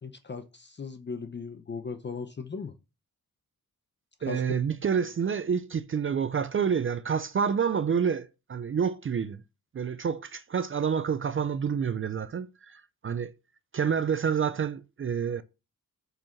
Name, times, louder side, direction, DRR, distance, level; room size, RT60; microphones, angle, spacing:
voice 1, 0.0-2.7 4.3-4.4, left 5 dB, 35° left, 0.7 m, -37 dB
voice 2, 4.2-9.4 9.7-13.3 13.7-15.4, right 7 dB, 40° right, 0.5 m, -28 dB
7.5 x 4.9 x 5.7 m
wide cardioid pair, 155°, 34 cm